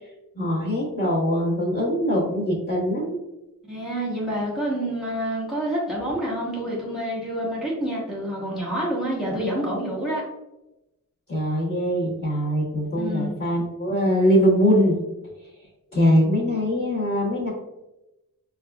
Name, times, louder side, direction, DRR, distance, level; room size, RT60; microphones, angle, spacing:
voice 1, 0.3-3.2 11.3-14.9 15.9-17.5, equal, 35° left, -9 dB, 1.0 m, -22 dB
voice 2, 3.7-10.2 13.0-13.3, equal, ahead, -5 dB, 1.1 m, -28 dB
4.5 x 2.4 x 2.2 m, 0.94 s
cardioid pair, 80°, 34 cm